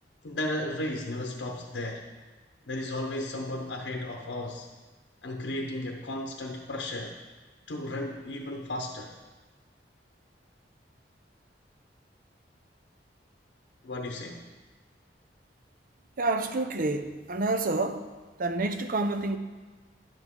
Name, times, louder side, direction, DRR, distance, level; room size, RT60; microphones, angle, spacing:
voice 1, 0.2-2.1 2.7-4.7 5.2-7.2 7.7-9.1 13.8-14.4, left 1 dB, 80° left, 2 dB, 0.8 m, -34 dB
voice 2, 16.2-18.1 18.4-19.4, right 2 dB, 50° right, 8 dB, 0.6 m, -28 dB
10.5 x 7.9 x 3.8 m, 1.3 s
head